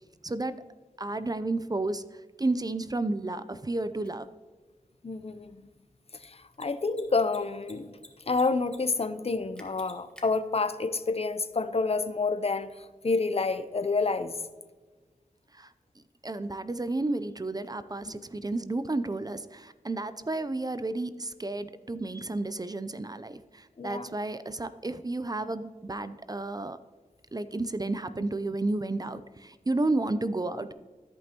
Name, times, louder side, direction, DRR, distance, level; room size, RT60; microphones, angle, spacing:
voice 1, 0.2-0.6 1.0-4.3 15.5-15.7 16.2-26.8 27.3-30.7, right 2 dB, 25° right, 13 dB, 0.5 m, -32 dB
Mechanisms, 4.0-4.1 6.4-6.6 6.9-7.0 7.3-8.1 8.3-8.8 9.0-9.1 9.6-10.2, equal, 5° left, 1.6 m, -49 dB
voice 2, 5.0-5.7 6.1-8.0 8.3-14.4 18.0-18.2 23.8-24.1, left 3 dB, 45° left, 11 dB, 0.7 m, -29 dB
13.5 x 5.3 x 2.9 m, 1.4 s
cardioid pair, 40°, 14 cm